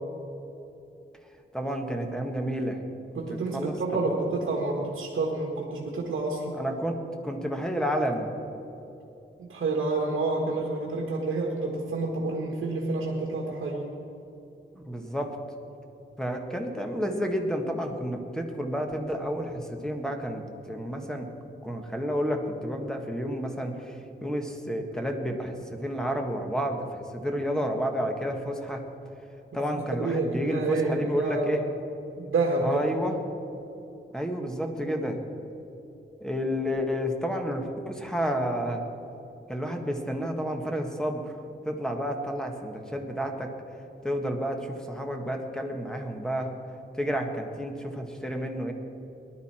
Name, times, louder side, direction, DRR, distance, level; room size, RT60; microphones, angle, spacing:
voice 1, 1.5-2.8 3.3-4.1 6.5-8.3 14.7-15.3 16.2-21.3 21.6-28.8 29.5-31.7 32.6-33.2 34.1-35.2 36.2-38.8 39.5-41.3 41.6-43.5 44.0-46.5 47.0-48.7, equal, 5° left, 3 dB, 1.6 m, -30 dB
voice 2, 3.1-6.5 9.5-13.9 29.5-31.5 32.2-32.9, right 3 dB, 85° right, -2 dB, 1.8 m, -29 dB
20.0 x 11.5 x 4.4 m, 2.9 s
wide cardioid pair, 115°, 20 cm